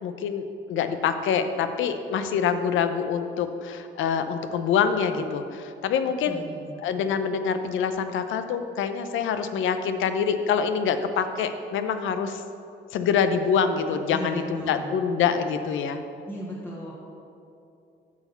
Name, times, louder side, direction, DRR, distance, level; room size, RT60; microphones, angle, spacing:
voice 1, 0.0-6.4 6.8-12.4 12.9-16.0, left 7 dB, 80° left, 9 dB, 0.6 m, -25 dB
voice 2, 6.2-6.8 14.1-15.0 16.3-16.9, equal, 10° left, -5 dB, 1.3 m, -36 dB
8.2 x 5.0 x 6.7 m, 2.6 s
cardioid pair, 90°, 20 cm